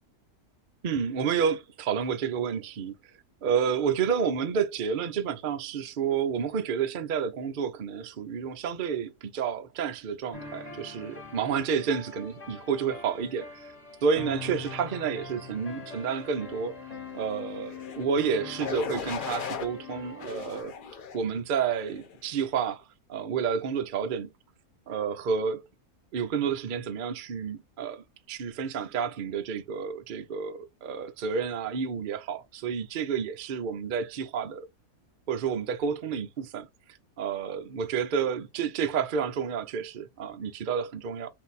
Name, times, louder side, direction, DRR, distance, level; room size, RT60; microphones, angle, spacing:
voice 1, 0.8-2.9 3.4-13.7 14.0-16.8 17.1-20.7 21.1-22.8 23.1-24.3 24.9-25.7 26.1-34.7 35.3-36.7 37.2-41.3, right 6 dB, 70° right, 0.4 m, -30 dB
sound 1, 10.3-20.6, left 4 dB, 25° left, 1.3 m, -43 dB
sound 2, 17.7-18.0 18.6-19.7 20.2-21.2 21.8-22.2, left 6 dB, 55° left, 0.5 m, -37 dB
3.8 x 2.6 x 4.0 m
omnidirectional pair, 1.6 m